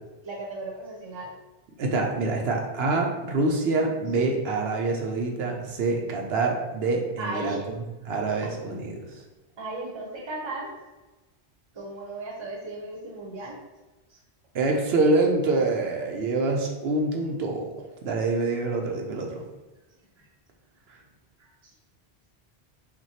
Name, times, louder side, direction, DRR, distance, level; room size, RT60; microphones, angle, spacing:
voice 1, 0.2-1.3 7.2-7.7 9.6-10.7 11.7-13.5 14.1-14.2 20.2-20.3 21.4-21.7, right 2 dB, 30° right, -2 dB, 0.8 m, -36 dB
voice 2, 1.8-7.6 8.0-9.1 14.5-17.7 18.0-19.4, right 3 dB, 75° right, 1 dB, 0.8 m, -26 dB
5.8 x 2.2 x 2.8 m, 1.1 s
omnidirectional pair, 1.1 m